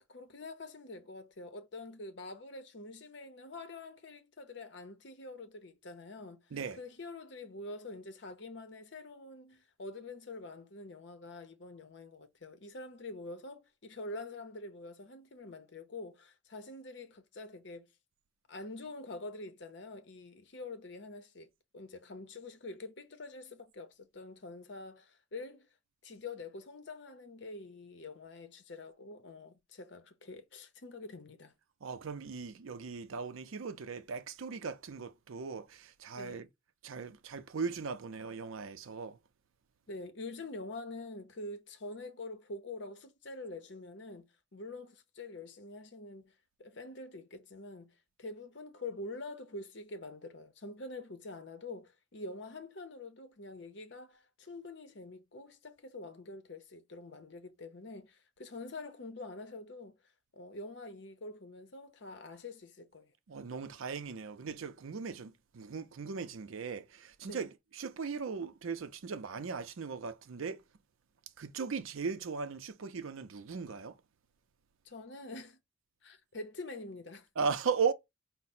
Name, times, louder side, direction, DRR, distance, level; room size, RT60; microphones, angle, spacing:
voice 1, 0.1-6.4 6.7-17.9 18.5-25.7 26.0-31.5 36.2-36.4 39.9-46.3 46.6-60.0 60.3-63.1 67.2-67.4 74.8-75.6 76.0-77.3, left 2 dB, 55° left, 0.7 m, -46 dB
voice 2, 31.8-36.5 36.8-39.2 63.3-70.6 71.4-73.9 77.4-77.9, right 5 dB, 75° right, 0.5 m, -38 dB
4.7 x 2.1 x 4.1 m
head